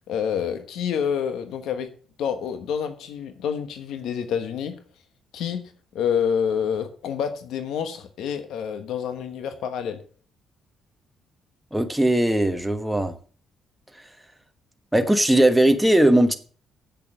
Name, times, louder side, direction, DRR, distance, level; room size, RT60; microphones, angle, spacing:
voice 1, 0.1-1.9 2.2-4.8 5.3-5.6 5.9-10.0, left 7 dB, 80° left, 1.2 m, -27 dB
voice 2, 11.7-13.1 14.9-16.4, right 1 dB, 5° right, 1.2 m, -19 dB
8.2 x 6.8 x 6.4 m
cardioid pair, 90°, 0 cm